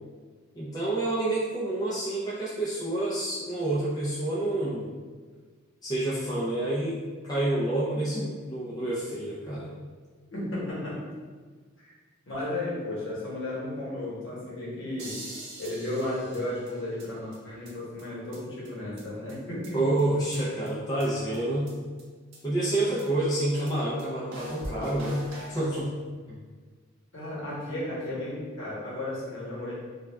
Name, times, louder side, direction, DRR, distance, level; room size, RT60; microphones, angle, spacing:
voice 1, 0.6-4.9 5.8-7.0 7.2-9.7 19.7-21.7 22.4-25.9 26.3-26.4, right 1 dB, 20° left, -8 dB, 0.5 m, -28 dB
voice 2, 10.3-11.0 11.8-11.9 12.3-15.2 15.6-19.8 22.8-22.9 27.1-29.7, left 1 dB, 65° left, -7 dB, 1.0 m, -34 dB
sound 1, 15.0-17.0 17.3-17.4 17.6-17.7 18.0-18.1 18.3-18.4 18.6-18.7 19.0-19.1 19.3-20.0 20.3-20.4 20.7-20.8 21.0-21.1 21.3-21.4 21.7-21.8 22.0-22.1 22.3-22.4 22.6-22.7 23.0-23.1 23.3-23.4 23.7-23.8 24.0-24.1 24.3-25.6, right 1 dB, 65° right, 0.6 m, -42 dB
2.3 x 2.2 x 3.3 m, 1.5 s
head